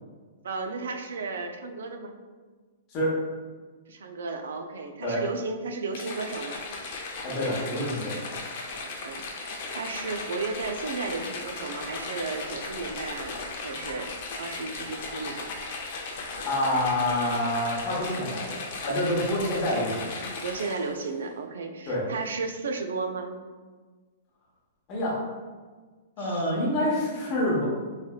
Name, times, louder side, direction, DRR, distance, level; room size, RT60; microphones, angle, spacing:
voice 1, 0.4-2.1 3.9-6.6 8.7-14.1 14.4-15.5 20.4-23.3 26.2-26.5, right 4 dB, 85° right, 5 dB, 0.3 m, -34 dB
sound 1, 5.9-21.0, left 3 dB, 50° left, 0.5 m, -37 dB
voice 2, 7.2-8.3 16.4-18.5 18.8-20.2 21.9-22.0 24.9-25.2 26.2-27.7, left 1 dB, 35° left, -5 dB, 0.9 m, -27 dB
3.1 x 2.7 x 2.3 m, 1.4 s
hypercardioid pair, 155°, 0 cm